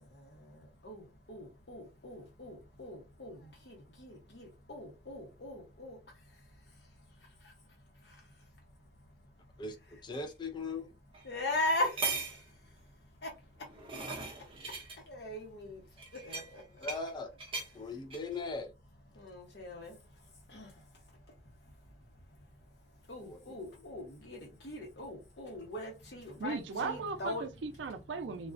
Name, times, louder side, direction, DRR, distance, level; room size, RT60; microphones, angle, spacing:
voice 1, 0.0-9.6 11.2-14.1 14.3-16.9 19.1-27.5, left 1 dB, 65° left, 0.9 m, -42 dB
voice 2, 9.6-10.9 16.8-17.3 17.7-18.7 23.2-23.8, left 3 dB, 25° left, 0.3 m, -40 dB
sound 1, 10.1-10.2 11.1-11.2 11.7-12.5 13.4-15.0 16.0-17.1 17.4-17.7 18.1-18.4, right 4 dB, 30° right, 0.5 m, -39 dB
voice 3, 26.4-28.5, right 4 dB, 80° right, 0.4 m, -37 dB
2.3 x 2.1 x 2.4 m
head